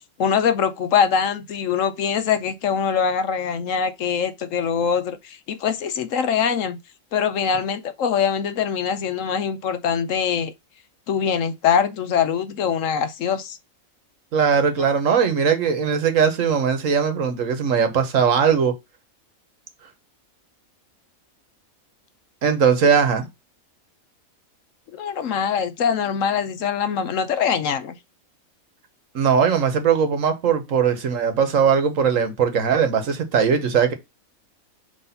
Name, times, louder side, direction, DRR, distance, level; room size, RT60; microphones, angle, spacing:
voice 1, 0.2-6.8 7.1-10.5 11.1-13.6 24.9-28.0, left 7 dB, 70° left, 1.0 m, -23 dB
voice 2, 14.3-18.8 22.4-23.3 29.1-33.9, right 6 dB, 65° right, 1.4 m, -19 dB
5.9 x 3.1 x 5.6 m
omnidirectional pair, 1.5 m